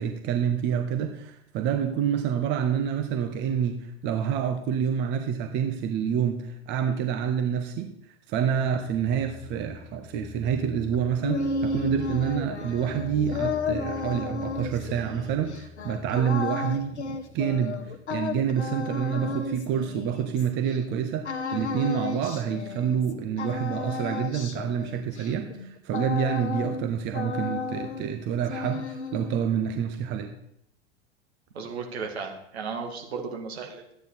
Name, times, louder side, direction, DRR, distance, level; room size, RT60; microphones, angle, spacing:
voice 1, 0.0-7.9 8.3-30.3, right 8 dB, 30° right, 6 dB, 1.0 m, -28 dB
sound 1, 8.8-18.6, left 4 dB, 5° left, 1.1 m, -44 dB
sound 2, 10.9-20.8 21.2-23.1 23.4-26.9 27.1-28.2 28.4-29.4, left 4 dB, 75° left, 1.2 m, -33 dB
voice 2, 31.5-33.9, right 5 dB, 65° right, 1 dB, 2.3 m, -35 dB
13.5 x 9.3 x 4.1 m, 0.75 s
figure-of-eight pair, 90°, 34 cm